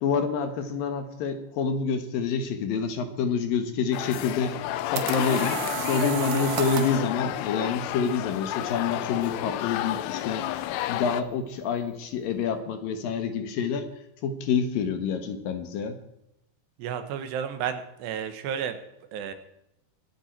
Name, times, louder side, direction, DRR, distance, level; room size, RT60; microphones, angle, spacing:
voice 1, 0.0-4.5 4.9-10.5 10.9-13.9 14.2-16.0, left 6 dB, 65° left, 8 dB, 2.7 m, -27 dB
sound 1, 3.9-11.2, left 14 dB, 85° left, 2.8 m, -31 dB
sound 2, 4.5-7.1, right 8 dB, 70° right, 1.8 m, -32 dB
voice 2, 16.8-18.8 19.1-19.3, right 8 dB, 85° right, 9 dB, 3.5 m, -32 dB
25.0 x 9.0 x 4.5 m, 0.85 s
omnidirectional pair, 4.7 m